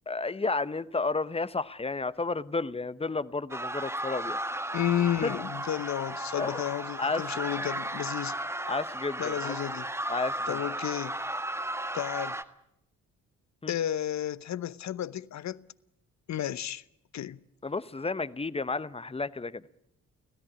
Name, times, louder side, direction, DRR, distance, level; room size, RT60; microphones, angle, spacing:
voice 1, 0.1-4.4 5.2-5.3 6.4-6.6 7.0-7.3 8.7-9.5 10.1-10.6 13.6-13.7 17.6-19.6, left 3 dB, 15° left, 0.9 m, -32 dB
sound 1, 3.5-12.4, right 1 dB, 5° right, 1.6 m, -35 dB
voice 2, 4.7-8.4 9.2-9.9 10.5-11.2 11.9-12.4 13.7-15.6 16.3-16.8 17.1-17.4, left 11 dB, 50° left, 0.9 m, -32 dB
25.0 x 17.0 x 9.9 m
hypercardioid pair, 40°, 37 cm